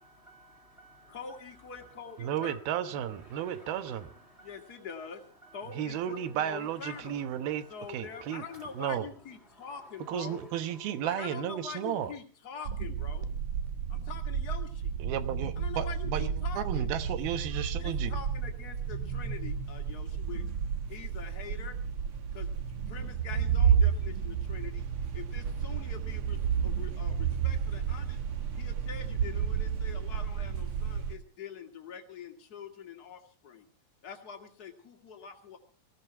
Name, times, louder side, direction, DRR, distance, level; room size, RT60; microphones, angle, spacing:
voice 1, 0.0-1.4 2.3-2.5 2.8-5.1 5.4-5.7 5.9-6.1 6.4-6.6 6.9-8.7 9.5-9.7 10.2-10.9, right 1 dB, 20° right, 1 dB, 2.1 m, -56 dB
voice 2, 1.1-2.6 4.4-5.2 5.5-7.2 7.7-10.4 11.0-13.3 13.9-15.0 15.6-16.9 17.8-20.4 20.9-21.8 22.3-22.5 22.9-24.9 25.1-28.2 28.6-33.7 34.0-35.6, left 6 dB, 30° left, 4 dB, 2.0 m, -44 dB
voice 3, 2.2-4.1 5.7-8.4 8.7-9.1 10.1-12.1 15.0-16.3 16.6-18.1, right 10 dB, 85° right, 11 dB, 3.0 m, -33 dB
sound 1, 12.6-31.1, right 7 dB, 65° right, 1.4 m, -31 dB
18.5 x 16.0 x 4.4 m, 0.42 s
omnidirectional pair, 4.2 m